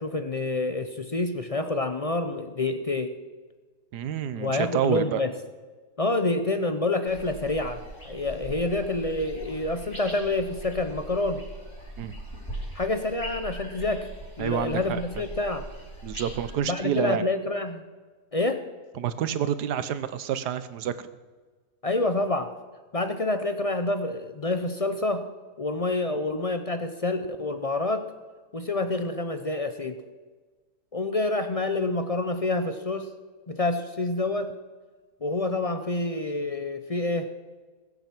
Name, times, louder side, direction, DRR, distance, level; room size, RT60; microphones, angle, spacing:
voice 1, 0.0-3.1 4.4-5.3 6.0-11.4 12.7-14.1 14.4-15.6 16.7-17.8 18.3-18.6 21.8-22.5 22.9-25.3 25.6-28.1 28.5-30.0 30.9-33.1 33.5-34.6 35.2-37.3, left 2 dB, 45° left, 8 dB, 0.4 m, -27 dB
voice 2, 3.9-5.2 12.0-12.2 14.4-15.0 16.0-17.2 19.0-21.1, right 9 dB, 85° right, 13 dB, 1.4 m, -28 dB
sound 1, 7.1-16.5, right 1 dB, 15° left, 5.4 m, -40 dB
21.5 x 8.0 x 6.0 m, 1.4 s
omnidirectional pair, 1.7 m